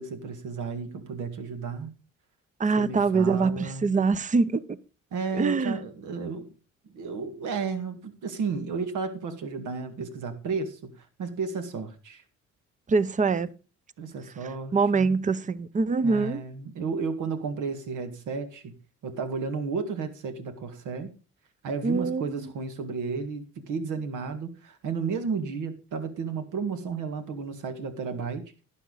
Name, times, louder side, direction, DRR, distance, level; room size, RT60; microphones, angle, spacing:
voice 1, 0.0-1.9 2.8-3.9 5.1-6.5 6.9-12.2 14.0-15.1 16.0-18.7 19.0-21.1 21.6-28.5, right 5 dB, 80° right, 2.0 m, -33 dB
voice 2, 2.6-4.8 5.4-5.8 12.9-13.5 14.7-16.4 21.8-22.2, right 4 dB, 25° right, 0.7 m, -24 dB
11.5 x 10.5 x 4.0 m
cardioid pair, 90°, 30 cm